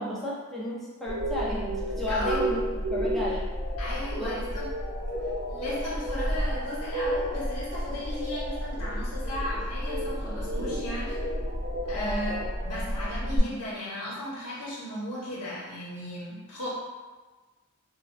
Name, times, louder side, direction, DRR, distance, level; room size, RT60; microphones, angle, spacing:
voice 1, 0.0-2.6 2.9-3.4 4.2-4.4 11.9-12.2, left 1 dB, ahead, -7 dB, 0.4 m, -33 dB
sound 1, 1.1-13.4, equal, 65° right, 0.9 m, -31 dB
voice 2, 2.1-2.4 3.8-4.7 5.5-11.2 11.8-16.7, left 1 dB, 80° left, -8 dB, 0.6 m, -35 dB
2.1 x 2.1 x 3.5 m, 1.3 s
head